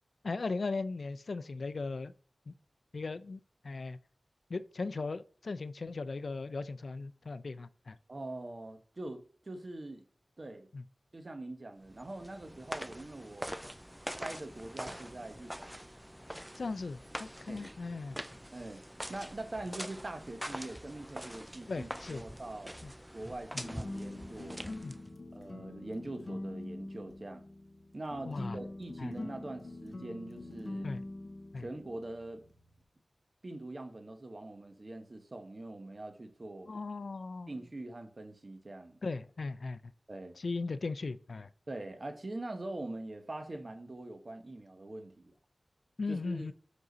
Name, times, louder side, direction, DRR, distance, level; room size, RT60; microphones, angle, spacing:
voice 1, 0.2-2.1 2.5-2.6 2.9-4.0 4.5-8.0 10.7-10.8 16.6-18.2 21.7-22.2 22.8-22.9 23.5-23.6 24.8-24.9 28.2-28.6 29.0-29.1 30.8-31.0 31.5-31.7 36.7-37.5 39.0-39.8 40.4-41.5 46.0-46.5, left 3 dB, 70° left, 0.3 m, -38 dB
voice 2, 8.1-10.0 10.4-10.7 11.1-13.6 14.2-15.7 17.5-17.7 18.5-18.8 19.1-22.7 23.1-24.6 25.3-27.5 27.9-30.9 31.6-32.5 33.4-36.7 37.5-39.0 40.1-40.4 41.7-45.3 46.1-46.5, right 2 dB, 45° right, 1.1 m, -43 dB
sound 1, 11.9-25.2, equal, 5° right, 0.3 m, -44 dB
sound 2, 23.5-32.8, left 2 dB, 50° left, 1.3 m, -44 dB
6.0 x 5.2 x 4.0 m
wide cardioid pair, 55°, 0 cm